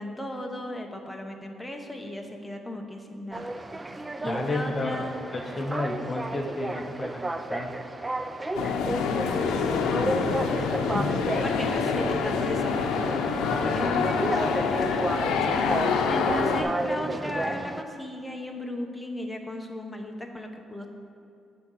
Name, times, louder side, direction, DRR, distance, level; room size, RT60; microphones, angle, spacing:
voice 1, 0.0-3.5 4.2-5.2 8.8-10.8 11.4-12.9 13.7-14.0 14.4-14.8 15.4-20.9, left 1 dB, 5° left, 2 dB, 0.9 m, -36 dB
sound 1, 3.3-17.8, right 2 dB, 20° right, 0.4 m, -33 dB
voice 2, 4.2-7.8 10.9-11.7 13.4-14.6, left 2 dB, 30° left, 2 dB, 0.7 m, -33 dB
sound 2, 8.5-16.6, left 5 dB, 90° left, 0.6 m, -26 dB
9.3 x 3.8 x 6.4 m, 2.7 s
cardioid pair, 90°, 0 cm